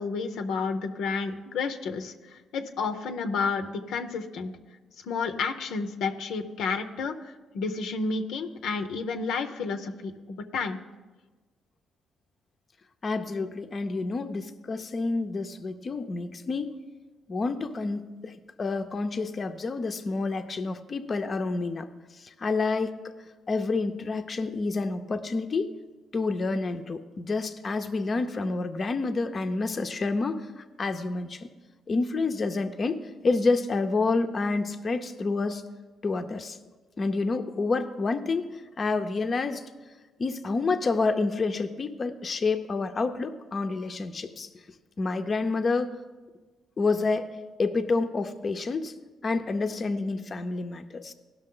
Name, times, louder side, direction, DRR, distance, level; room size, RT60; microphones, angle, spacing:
voice 1, 0.0-4.5 5.0-10.8, left 4 dB, 85° left, 7 dB, 0.7 m, -31 dB
voice 2, 13.0-16.7 17.3-21.9 22.1-23.0 23.5-25.7 26.1-31.5 31.9-35.6 36.0-36.6 37.0-39.6 40.2-44.5 45.0-46.0 46.8-47.3 47.6-48.9 49.2-51.1, left 3 dB, 40° left, 6 dB, 0.6 m, -28 dB
17.0 x 6.1 x 3.8 m, 1.3 s
cardioid pair, 90°, 0 cm